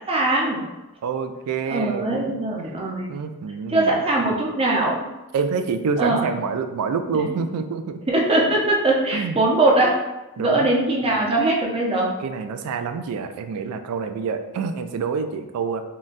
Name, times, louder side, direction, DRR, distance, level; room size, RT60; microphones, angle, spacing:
voice 1, 0.1-0.6 1.7-3.2 3.7-5.1 6.0-6.4 7.3-7.4 8.1-10.0 10.4-12.1, right 2 dB, 25° right, -2 dB, 0.5 m, -21 dB
voice 2, 1.0-2.1 3.1-3.9 5.3-8.0 9.1-9.4 10.4-10.7 12.2-15.8, right 5 dB, 80° right, 9 dB, 0.3 m, -27 dB
3.8 x 2.1 x 2.5 m, 1.0 s
head